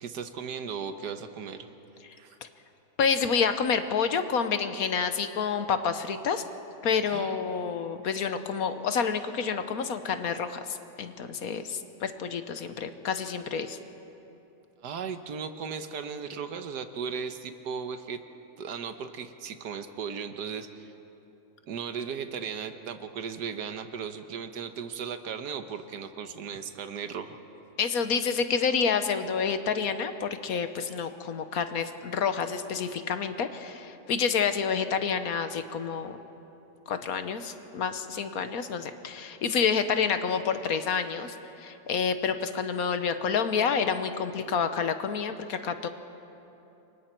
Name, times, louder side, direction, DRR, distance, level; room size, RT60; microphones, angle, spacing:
voice 1, 0.0-1.7 2.2-2.4 7.1-7.4 14.8-18.2 18.6-20.9 21.7-27.4, right 6 dB, 75° right, 8 dB, 1.6 m, -36 dB
voice 2, 3.0-6.4 6.8-13.8 27.8-36.2 36.9-45.9, left 6 dB, 65° left, 9 dB, 1.3 m, -28 dB
28.5 x 24.0 x 4.5 m, 3.0 s
omnidirectional pair, 1.8 m